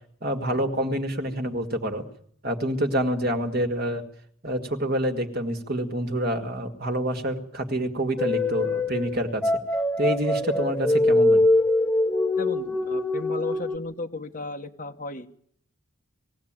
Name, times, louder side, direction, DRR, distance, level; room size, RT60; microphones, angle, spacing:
voice 1, 0.2-2.0 2.4-4.0 4.4-9.5 10.0-11.5, right 1 dB, 45° right, 5 dB, 2.0 m, -27 dB
sound 1, 8.2-13.8, left 2 dB, 5° left, 0.9 m, -23 dB
voice 2, 12.3-15.3, left 2 dB, 40° left, 4 dB, 1.4 m, -34 dB
20.5 x 15.5 x 8.9 m, 0.63 s
head